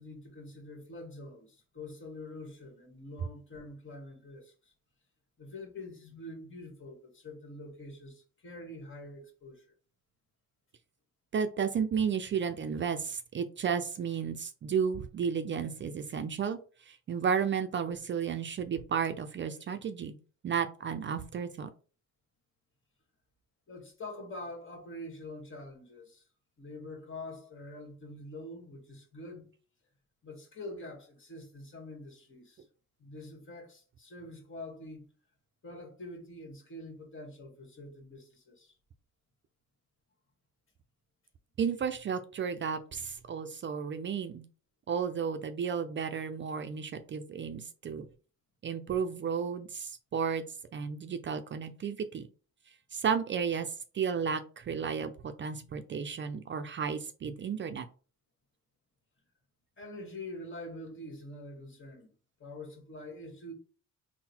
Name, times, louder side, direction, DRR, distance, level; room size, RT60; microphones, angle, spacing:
voice 1, 0.0-4.7 5.4-9.6 23.7-26.2 26.6-29.5 30.2-32.6 33.0-35.0 35.6-38.7 59.8-62.1 62.4-63.5, left 1 dB, 40° left, 1.4 m, -45 dB
voice 2, 11.3-16.6 16.9-20.1 20.4-21.7 41.6-44.4 44.9-48.0 48.6-50.4 50.7-52.3 52.9-53.7 53.9-57.9, right 6 dB, 40° right, 0.4 m, -33 dB
3.7 x 2.1 x 4.3 m
cardioid pair, 90°, 30 cm